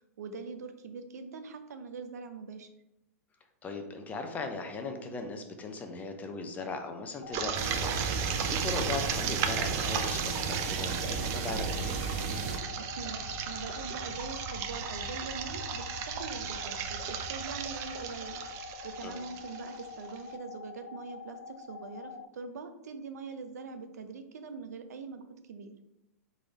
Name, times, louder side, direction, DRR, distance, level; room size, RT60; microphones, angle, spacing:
voice 1, 0.2-2.7 12.8-18.4 18.8-25.7, right 4 dB, 75° right, 8 dB, 0.6 m, -43 dB
voice 2, 3.6-8.0 8.5-12.0 19.0-19.2, left 4 dB, 20° left, 5 dB, 0.6 m, -38 dB
sound 1, 7.2-22.3, left 5 dB, 75° left, 0.5 m, -45 dB
sound 2, 7.3-20.2, right 8 dB, 35° right, 0.5 m, -36 dB
sound 3, 7.5-12.6, right 5 dB, 55° right, 0.9 m, -34 dB
3.8 x 3.3 x 4.1 m, 0.89 s
hypercardioid pair, 120°, 9 cm